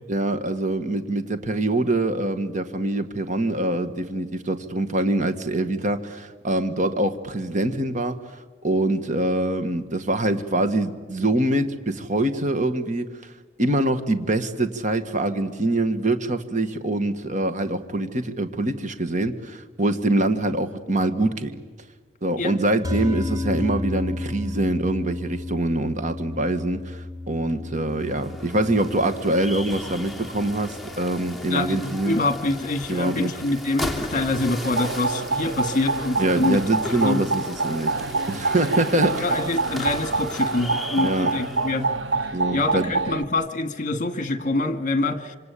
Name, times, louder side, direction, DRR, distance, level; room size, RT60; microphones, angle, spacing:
voice 1, 0.1-8.2 8.6-13.1 13.6-21.5 22.2-32.2 32.9-33.3 36.2-39.3 41.0-41.3 42.3-42.9, right 1 dB, 45° right, 9 dB, 1.7 m, -24 dB
sound 1, 22.8-33.3, left 2 dB, 20° right, 5.5 m, -34 dB
sound 2, 27.9-42.0, left 2 dB, ahead, 2.9 m, -37 dB
voice 2, 31.5-36.6 36.9-37.2 39.2-41.9 42.2-45.4, left 2 dB, 45° left, 9 dB, 2.0 m, -25 dB
sound 3, 34.6-43.2, right 3 dB, 80° right, 0.9 m, -26 dB
27.0 x 26.0 x 8.5 m, 1.3 s
head